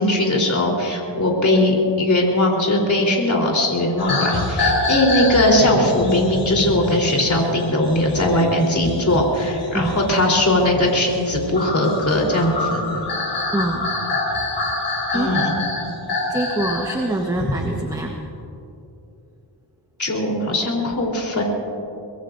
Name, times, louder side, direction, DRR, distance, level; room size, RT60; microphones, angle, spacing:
voice 1, 0.0-12.8 15.1-15.5 20.0-21.4, left 1 dB, 40° left, -1 dB, 3.9 m, -19 dB
sound 1, 4.0-17.0 17.4-17.7, left 2 dB, 60° left, 5.1 m, -26 dB
voice 2, 13.5-13.9 15.1-15.3 16.3-18.3, right 1 dB, 10° right, 1 dB, 1.3 m, -25 dB
24.0 x 21.5 x 2.7 m, 2.7 s
cardioid pair, 90°, 46 cm